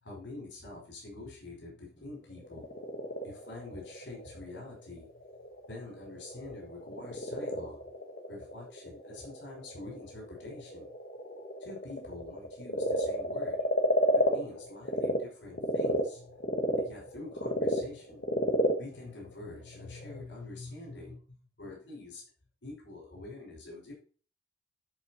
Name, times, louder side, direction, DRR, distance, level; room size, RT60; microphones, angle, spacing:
voice 1, 0.0-2.7 3.2-5.1 5.7-7.8 8.3-10.9 11.6-13.6 14.1-16.4 16.8-18.4 18.8-22.2 22.6-23.9, left 2 dB, 85° left, -2 dB, 5.2 m, -46 dB
Frog, 2.3-15.2 15.5-20.2, left 1 dB, 55° left, 1.5 m, -32 dB
12.0 x 5.6 x 4.4 m, 0.40 s
head